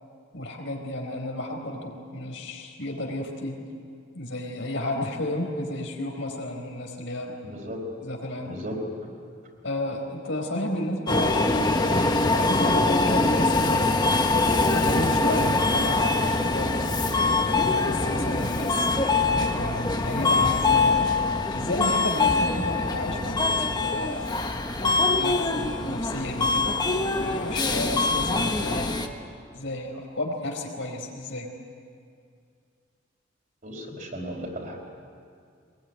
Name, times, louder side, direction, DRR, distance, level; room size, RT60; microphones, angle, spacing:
voice 1, 0.3-3.6 4.1-7.3 8.0-8.5 9.6-11.4 11.7-13.8 14.6-16.7 17.4-18.9 19.2-21.0 21.5-24.3 24.8-26.7 27.2-28.9 29.5-31.5, left 1 dB, 75° left, 2 dB, 4.5 m, -32 dB
voice 2, 7.4-7.8 8.5-8.8 33.6-34.8, equal, 45° right, 0 dB, 5.0 m, -35 dB
Subway metro underground, 11.1-29.1, left 3 dB, 20° left, 1.3 m, -23 dB
23.0 x 21.5 x 9.8 m, 2.3 s
head